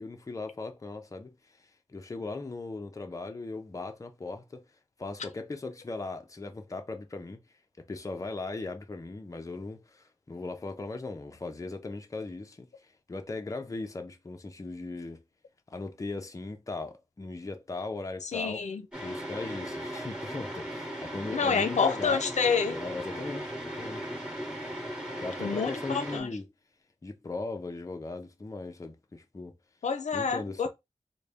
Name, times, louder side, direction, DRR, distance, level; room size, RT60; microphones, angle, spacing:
voice 1, 0.0-4.6 5.0-7.4 7.8-15.2 15.7-18.6 19.0-22.2 22.7-24.1 25.2-26.5 27.0-29.5 30.1-30.7, left 3 dB, 25° left, 0.5 m, -38 dB
voice 2, 18.2-18.8 21.3-22.8 25.4-26.3 29.8-30.7, left 5 dB, 80° left, 0.5 m, -28 dB
sound 1, 18.9-26.2, equal, 10° right, 1.1 m, -37 dB
3.9 x 2.1 x 3.3 m
wide cardioid pair, 100°, 12 cm